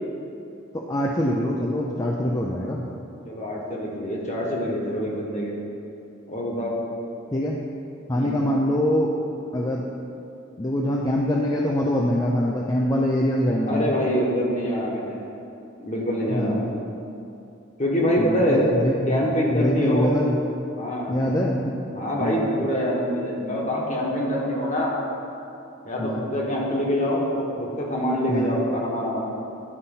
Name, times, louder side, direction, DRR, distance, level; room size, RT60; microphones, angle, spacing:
voice 1, 0.7-2.9 7.3-7.6 8.1-9.1 9.5-9.9 10.6-13.9 16.3-16.7 18.2-20.4 21.1-21.8 22.2-22.5 26.0-26.2 28.3-28.6, equal, 20° left, -2 dB, 0.5 m, -24 dB
voice 2, 3.2-5.5 6.3-6.7 8.1-8.4 13.7-15.2 15.8-16.6 17.8-18.7 19.1-20.3 20.7-21.2 21.9-25.0 25.8-29.2, equal, 40° left, -3 dB, 1.4 m, -25 dB
11.0 x 4.1 x 5.5 m, 2.7 s
head